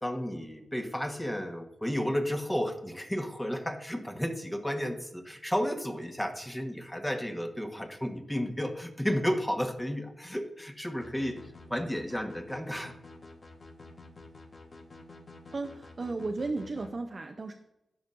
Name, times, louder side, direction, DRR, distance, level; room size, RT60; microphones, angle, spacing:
voice 1, 0.0-11.4 11.7-12.9, equal, 10° left, 4 dB, 1.1 m, -32 dB
sound 1, 11.0-16.9, left 2 dB, 50° left, 1.2 m, -49 dB
voice 2, 15.5-17.5, right 3 dB, 50° right, 4 dB, 0.6 m, -34 dB
12.5 x 5.2 x 2.5 m, 0.91 s
cardioid pair, 50°, 0 cm